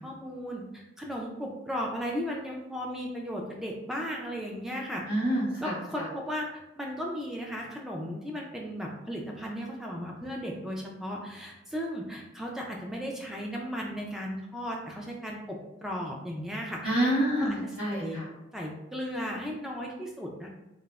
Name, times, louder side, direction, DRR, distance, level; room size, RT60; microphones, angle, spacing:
voice 1, 0.0-5.0 5.6-6.5 6.8-16.8 17.4-18.2 18.5-20.5, equal, ahead, -1 dB, 0.3 m, -36 dB
voice 2, 5.0-6.0 16.8-18.2, right 1 dB, 45° right, -17 dB, 1.4 m, -28 dB
3.1 x 2.0 x 2.3 m, 0.93 s
head